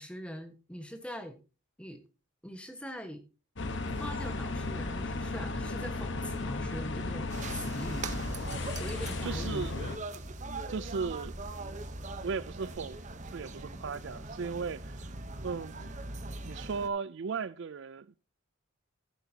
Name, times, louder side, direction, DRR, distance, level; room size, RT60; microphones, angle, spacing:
voice 1, 0.0-1.4 1.8-2.0 2.4-3.2 4.0-8.1 8.8-9.7, equal, 5° left, 1.3 m, -42 dB
sound 1, 3.6-10.0, left 2 dB, 55° left, 1.1 m, -35 dB
sound 2, 7.3-16.9, right 2 dB, 35° right, 0.9 m, -41 dB
voice 2, 9.2-9.9 10.7-11.4 12.2-15.1 15.4-15.9 16.4-18.1, right 5 dB, 55° right, 0.4 m, -36 dB
14.5 x 8.2 x 2.8 m
head